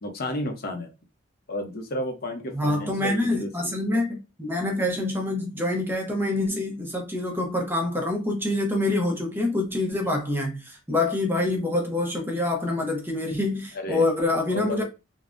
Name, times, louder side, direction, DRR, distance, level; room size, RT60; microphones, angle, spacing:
voice 1, 0.0-0.9 1.5-3.7 9.9-10.1 13.7-14.0 14.5-14.8, left 1 dB, 45° left, 0.6 m, -32 dB
voice 2, 2.5-14.8, left 2 dB, 10° right, 0.5 m, -26 dB
3.4 x 2.0 x 2.5 m
head